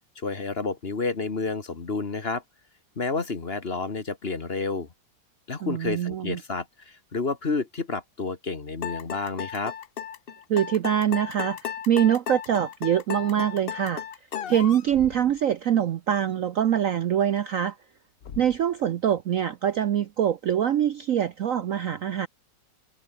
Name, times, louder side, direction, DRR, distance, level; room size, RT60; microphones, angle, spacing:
voice 1, 0.1-2.4 3.0-4.9 5.5-9.7, left 4 dB, 35° left, 1.6 m, -30 dB
voice 2, 5.6-6.4 10.5-14.0 14.5-17.8 18.4-22.3, right 9 dB, 60° right, 0.9 m, -24 dB
sound 1, 8.8-14.9, left 9 dB, 85° left, 0.5 m, -34 dB
Thump thud, 14.9-15.5 18.2-18.7, left 7 dB, 55° left, 1.8 m, -43 dB
omnidirectional pair, 2.0 m